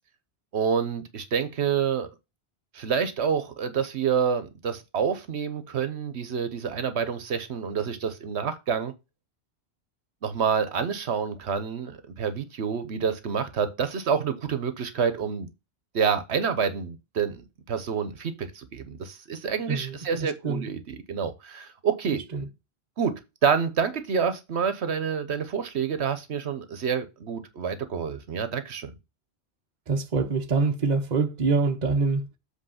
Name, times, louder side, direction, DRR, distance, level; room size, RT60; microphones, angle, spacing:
voice 1, 0.5-2.1 2.7-8.9 10.2-15.5 15.9-22.2 23.0-23.1 23.4-28.9, right 6 dB, 75° right, 1.2 m, -28 dB
voice 2, 19.7-20.7 22.3-22.5 29.9-32.4, right 4 dB, 40° right, 1.0 m, -25 dB
7.8 x 3.5 x 5.7 m
omnidirectional pair, 1.1 m